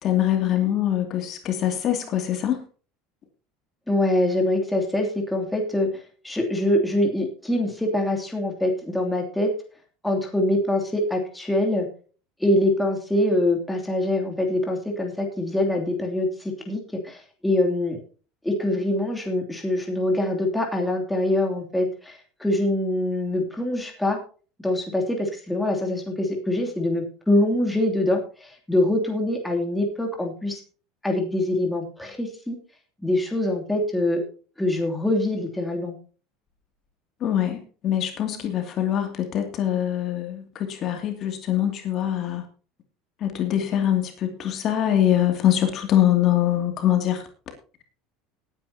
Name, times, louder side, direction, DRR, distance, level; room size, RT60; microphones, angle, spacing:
voice 1, 0.0-2.6 37.2-42.4 43.2-47.2, left 11 dB, 35° left, 5 dB, 2.5 m, -23 dB
voice 2, 3.9-9.5 10.0-11.9 12.4-18.0 18.4-24.2 24.6-30.6 31.0-32.6 33.0-34.2 34.6-35.9, left 1 dB, 5° left, 1 dB, 2.9 m, -24 dB
19.5 x 9.8 x 2.8 m, 0.38 s
cardioid pair, 155°, 0 cm